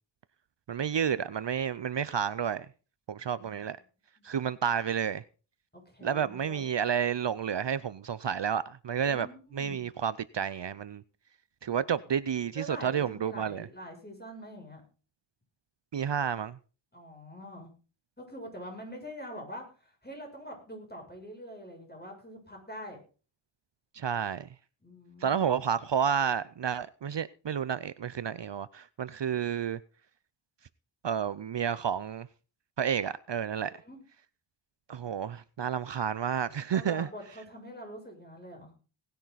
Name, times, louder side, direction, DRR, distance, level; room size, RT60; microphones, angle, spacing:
voice 1, 0.7-2.7 3.1-3.8 4.2-5.2 6.0-9.3 9.5-11.0 11.6-13.7 15.9-16.6 23.9-24.5 25.2-29.8 31.0-32.3 32.8-33.8 34.9-37.1, right 8 dB, 60° right, 0.6 m, -30 dB
voice 2, 5.7-6.6 9.1-9.8 12.5-14.8 16.9-17.7 18.2-23.0 24.8-25.5 33.7-34.0 36.7-38.7, equal, 20° left, 7.1 m, -45 dB
19.0 x 10.5 x 4.1 m
wide cardioid pair, 65°, 50 cm